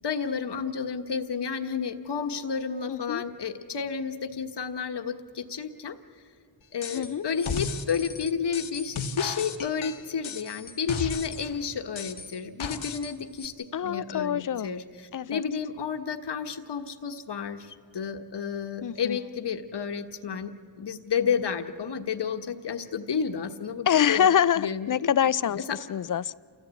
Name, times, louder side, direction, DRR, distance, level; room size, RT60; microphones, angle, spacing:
voice 1, 0.0-6.0 6.7-24.3 24.6-25.1 25.7-25.8, left 6 dB, 60° left, 7 dB, 1.3 m, -31 dB
voice 2, 2.9-3.2 6.9-7.2 13.7-14.7 15.1-15.4 18.8-19.2 23.9-25.6 25.9-26.4, left 9 dB, 45° left, 19 dB, 0.5 m, -25 dB
sound 1, 6.8-7.1 7.4-11.5 12.0-13.1 13.4-13.5, left 5 dB, 75° left, 1.4 m, -35 dB
28.5 x 14.5 x 8.3 m, 2.1 s
cardioid pair, 55°, 47 cm